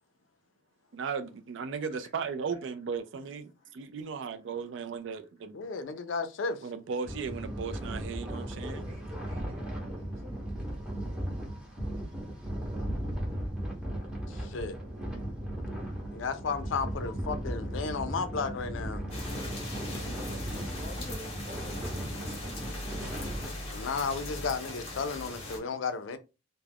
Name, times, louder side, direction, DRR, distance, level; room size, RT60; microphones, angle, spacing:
voice 1, 0.9-5.9 6.6-8.8, right 5 dB, 65° right, 0.4 m, -36 dB
voice 2, 4.1-4.5 5.1-5.2 8.5-10.5 16.8-17.4 18.9-19.3 20.7-22.1, left 1 dB, 30° right, 1.0 m, -50 dB
voice 3, 5.5-6.6 14.3-14.7 16.1-19.1 23.7-26.2, left 5 dB, 70° left, 0.4 m, -33 dB
sound 1, 7.0-23.5, right 1 dB, 5° right, 0.7 m, -37 dB
sound 2, 19.1-25.6, left 1 dB, 30° left, 0.8 m, -39 dB
2.3 x 2.1 x 3.3 m
head